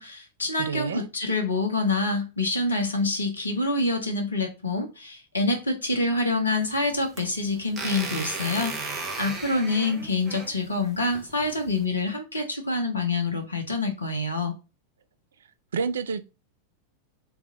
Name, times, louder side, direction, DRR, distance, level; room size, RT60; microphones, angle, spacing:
voice 1, 0.0-14.5, left 2 dB, 75° left, 1.2 m, -26 dB
voice 2, 0.6-1.1 15.7-16.2, right 6 dB, 65° right, 0.4 m, -28 dB
sound 1, 6.6-11.8, right 3 dB, 20° right, 1.1 m, -36 dB
3.4 x 3.2 x 3.7 m
figure-of-eight pair, 90°, 0 cm